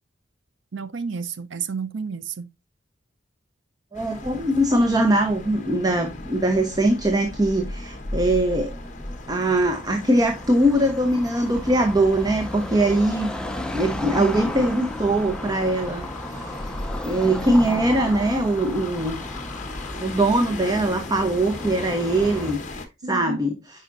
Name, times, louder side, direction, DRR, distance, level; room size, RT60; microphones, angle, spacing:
voice 1, 0.7-2.5 23.0-23.4, right 5 dB, 75° right, 0.6 m, -31 dB
sound 1, 3.9-22.9, left 2 dB, 40° left, 1.3 m, -37 dB
voice 2, 3.9-8.8 9.3-13.3 13.7-16.7 17.0-19.2 20.0-22.8 23.1-23.6, right 1 dB, 20° right, 0.9 m, -22 dB
Car passing by / Traffic noise roadway noise, 8.0-22.5, left 1 dB, 5° left, 0.6 m, -35 dB
9.3 x 5.0 x 2.6 m
head